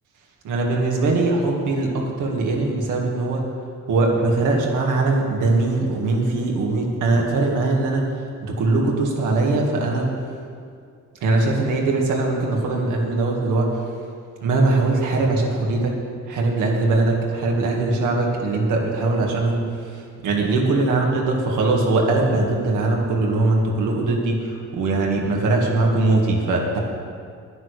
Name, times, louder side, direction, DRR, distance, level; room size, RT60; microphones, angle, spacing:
voice 1, 0.4-3.4 3.9-8.1 8.4-10.1 11.2-13.7 14.4-15.9 16.3-19.7 19.9-26.8, right 2 dB, 85° right, 0 dB, 2.2 m, -21 dB
10.0 x 9.6 x 6.7 m, 2.3 s
cardioid pair, 90°, 30 cm